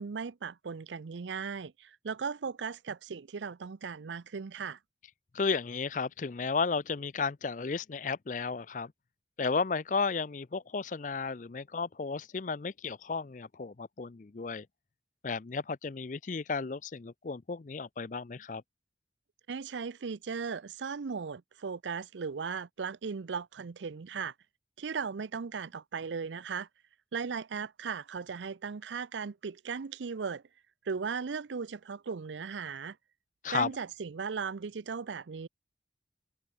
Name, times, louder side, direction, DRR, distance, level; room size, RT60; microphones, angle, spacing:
voice 1, 0.0-4.8 19.5-24.3 24.8-26.7 27.1-30.4 30.9-33.0 33.5-35.5, right 5 dB, 85° right, 0.5 m, -37 dB
voice 2, 5.3-8.9 9.4-14.7 15.2-18.6 33.4-33.7, left 4 dB, 45° left, 0.5 m, -33 dB
head